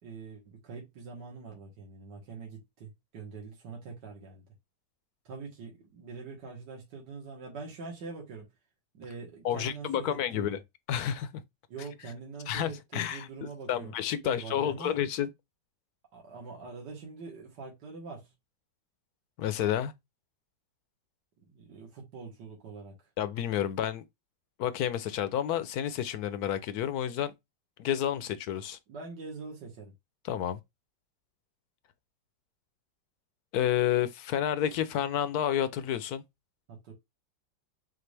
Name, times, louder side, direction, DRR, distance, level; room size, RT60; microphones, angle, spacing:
voice 1, 0.0-4.4 5.3-8.5 8.9-10.6 11.7-13.9 14.2-15.0 16.1-18.3 21.4-23.0 28.9-29.9 36.7-36.9, right 4 dB, 70° right, 2.1 m, -44 dB
voice 2, 9.4-10.6 10.9-11.3 12.5-13.3 13.7-15.3 19.4-19.9 23.2-24.0 24.6-27.3 27.8-28.8 30.2-30.6 33.5-36.2, left 10 dB, 70° left, 1.0 m, -30 dB
5.9 x 2.4 x 3.3 m
omnidirectional pair, 1.9 m